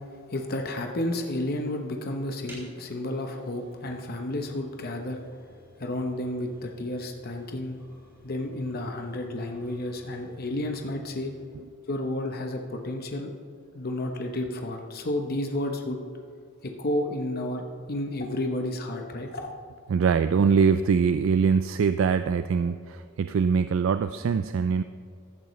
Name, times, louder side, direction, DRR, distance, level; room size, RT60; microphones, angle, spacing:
voice 1, 0.3-5.2 5.8-7.8 8.2-11.3 11.9-13.3 13.7-16.0 16.6-19.5, left 1 dB, 45° left, 3 dB, 0.8 m, -31 dB
sound 1, 2.5-11.6, equal, 10° right, 3.3 m, -55 dB
voice 2, 19.9-24.8, right 6 dB, 60° right, 11 dB, 0.3 m, -23 dB
14.5 x 10.5 x 3.1 m, 2.3 s
head